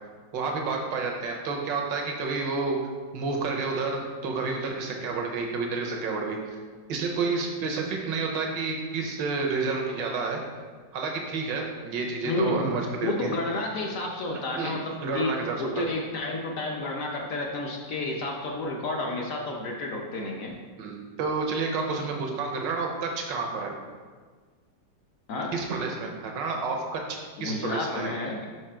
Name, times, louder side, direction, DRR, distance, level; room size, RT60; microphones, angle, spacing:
voice 1, 0.3-2.8 3.1-6.4 6.9-10.4 10.9-13.3 14.5-15.8 20.8-23.7 25.5-28.1, right 4 dB, 80° right, 1 dB, 1.5 m, -30 dB
voice 2, 12.2-12.7 13.0-20.6 25.3-25.5 27.4-28.4, left 2 dB, 60° left, 0 dB, 0.9 m, -31 dB
5.4 x 4.9 x 4.3 m, 1.5 s
omnidirectional pair, 2.0 m